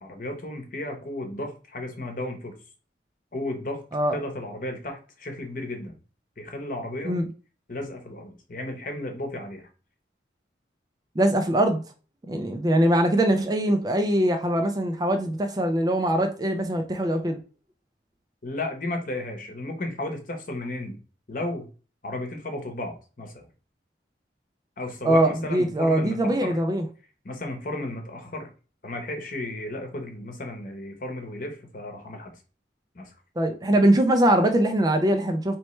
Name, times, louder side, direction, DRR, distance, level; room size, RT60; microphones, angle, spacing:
voice 1, 0.0-2.6 3.3-3.8 4.1-5.9 6.4-7.1 7.7-9.7 18.4-21.0 21.3-21.7 22.0-23.5 24.8-26.6 27.2-28.5 28.8-32.3 32.9-33.1, left 1 dB, 45° left, 0.9 m, -34 dB
voice 2, 11.2-11.8 12.3-17.4 25.0-26.9 33.4-35.6, right 1 dB, 20° right, 0.4 m, -22 dB
4.3 x 3.1 x 3.1 m
head